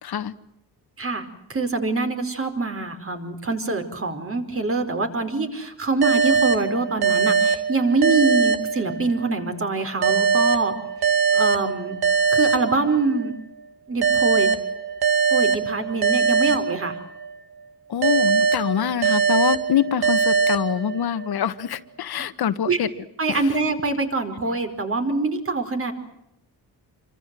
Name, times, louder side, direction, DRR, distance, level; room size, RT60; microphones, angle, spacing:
voice 1, 0.0-0.3 17.9-22.9 23.3-23.5, left 9 dB, 70° left, 1.6 m, -25 dB
voice 2, 1.5-10.7 11.3-12.0 12.3-13.3 13.9-14.5 15.3-16.9 22.7-22.8 23.2-25.9, right 3 dB, 35° right, 4.7 m, -24 dB
sound 1, 6.0-9.3 10.0-13.3 14.0-17.3 18.0-21.3, right 5 dB, 70° right, 2.6 m, -22 dB
28.0 x 25.5 x 7.7 m
wide cardioid pair, 145°, 39 cm